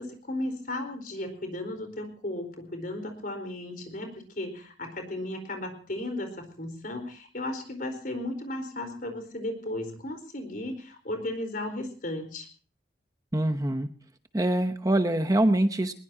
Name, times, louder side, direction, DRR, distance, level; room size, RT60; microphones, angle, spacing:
voice 1, 0.0-12.5, left 1 dB, 50° left, 7 dB, 4.4 m, -35 dB
voice 2, 13.3-13.9 14.3-15.9, right 1 dB, 20° right, 8 dB, 0.9 m, -24 dB
21.0 x 20.5 x 2.8 m, 0.40 s
head